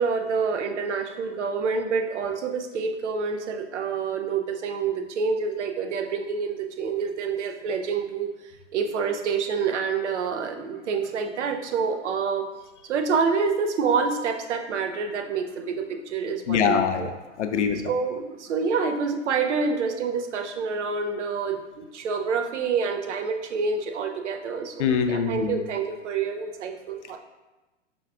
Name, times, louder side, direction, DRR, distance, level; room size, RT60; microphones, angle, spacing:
voice 1, 0.0-8.3 8.7-12.5 12.9-17.1 17.8-27.2, right 5 dB, 70° right, 5 dB, 0.6 m, -27 dB
voice 2, 16.5-17.1 17.4-17.8 24.8-25.6, left 7 dB, 70° left, 7 dB, 0.6 m, -23 dB
5.2 x 2.3 x 3.5 m, 1.1 s
hypercardioid pair, 115°, 37 cm